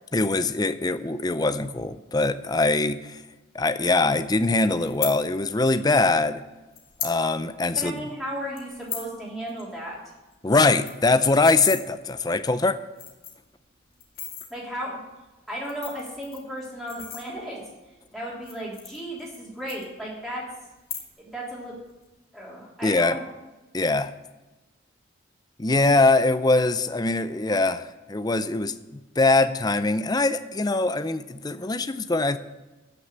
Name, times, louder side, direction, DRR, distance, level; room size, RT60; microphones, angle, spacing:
voice 1, 0.1-3.2 3.5-6.4 7.0-8.1 10.4-12.8 22.8-23.2 23.7-24.1 25.6-32.4, left 3 dB, 20° left, 12 dB, 0.5 m, -22 dB
sound 1, 4.8-5.1 6.1-6.2 6.7-7.2 7.5-7.6 7.9-8.1 8.6-9.1 9.5-9.6 9.9-10.0 10.3-10.4 10.7-11.8 12.5-12.6 12.9-13.5 14.0-14.5 15.5-17.7 18.3-19.4 19.7-20.3 20.7-21.3 21.6-22.0, left 8 dB, 50° left, 2.1 m, -36 dB
voice 2, 7.7-10.0 14.5-15.0 15.5-17.7 18.1-20.4 21.2-21.7 22.3-23.2, equal, ahead, -6 dB, 3.3 m, -34 dB
13.0 x 6.4 x 8.1 m, 1.1 s
head